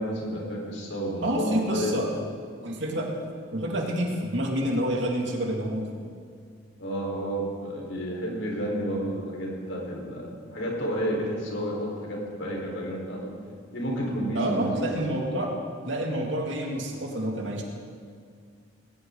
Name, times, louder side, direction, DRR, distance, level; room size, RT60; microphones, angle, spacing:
voice 1, 0.0-1.9 6.8-13.3 13.7-15.0, equal, 80° left, -2 dB, 4.8 m, -31 dB
voice 2, 1.2-2.1 2.6-3.1 3.5-6.0 14.3-15.5 15.8-17.6, right 1 dB, 70° right, 0 dB, 2.6 m, -28 dB
19.5 x 18.0 x 4.1 m, 2.1 s
head